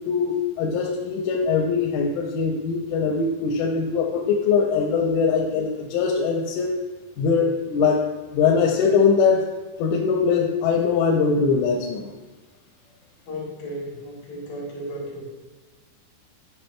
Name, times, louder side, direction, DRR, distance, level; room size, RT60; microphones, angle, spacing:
voice 1, 0.1-6.7 7.2-8.0 8.3-9.4 9.8-12.1, left 5 dB, 90° left, 0 dB, 3.2 m, -21 dB
voice 2, 13.3-15.2, equal, 60° left, -6 dB, 3.4 m, -34 dB
10.0 x 6.6 x 2.2 m, 1.3 s
omnidirectional pair, 5.5 m